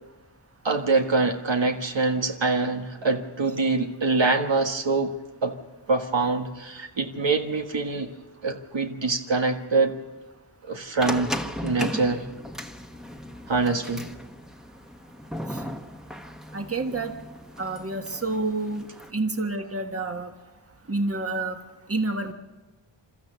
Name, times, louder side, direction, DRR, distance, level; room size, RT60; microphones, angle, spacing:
voice 1, 0.6-5.1 5.4-5.5 5.9-8.1 8.4-9.9 10.6-11.3 11.6-12.3 13.5-14.1, right 3 dB, 75° right, 4 dB, 1.6 m, -24 dB
sound 1, 11.0-19.1, equal, ahead, 1.2 m, -36 dB
voice 2, 16.5-17.1 17.6-18.9 19.1-20.3 20.9-21.6 21.9-22.3, right 2 dB, 30° right, 5 dB, 1.5 m, -28 dB
28.5 x 13.5 x 6.9 m, 1.2 s
wide cardioid pair, 70°, 45 cm